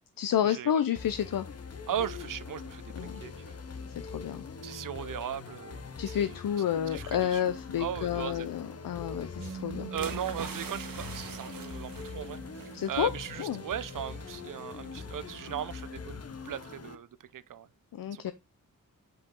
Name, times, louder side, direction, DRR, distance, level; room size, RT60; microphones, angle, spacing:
voice 1, 0.2-1.5 2.9-3.2 4.1-4.5 6.0-9.9 12.7-13.1 13.4-13.6 17.9-18.3, left 9 dB, 80° left, 0.6 m, -30 dB
sound 1, 1.0-17.0, left 5 dB, 45° left, 0.9 m, -43 dB
voice 2, 1.9-3.6 4.6-6.4 6.9-7.4 7.8-8.5 9.4-9.6 9.9-17.7 18.1-18.3, right 9 dB, 70° right, 0.6 m, -38 dB
Bass guitar, 9.4-15.6, right 6 dB, 25° right, 0.4 m, -46 dB
sound 2, 10.0-13.0 13.3-13.6, right 6 dB, 85° right, 1.5 m, -43 dB
7.8 x 4.7 x 3.7 m
wide cardioid pair, 110°, 34 cm